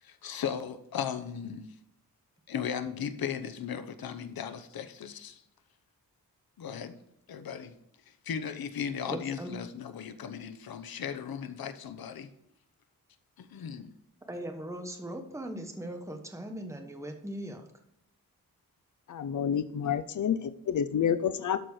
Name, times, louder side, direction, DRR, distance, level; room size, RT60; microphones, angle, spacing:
voice 1, 0.0-1.7 2.5-5.4 6.6-7.0 7.3-7.7 8.1-12.3 13.4-13.9 19.8-20.0 21.0-21.3, left 7 dB, 90° left, 1.0 m, -37 dB
voice 2, 9.1-9.5 14.3-17.7, right 1 dB, 10° right, 1.2 m, -39 dB
voice 3, 19.1-21.6, left 8 dB, 55° left, 0.6 m, -29 dB
12.5 x 4.4 x 4.8 m
wide cardioid pair, 115°, 35 cm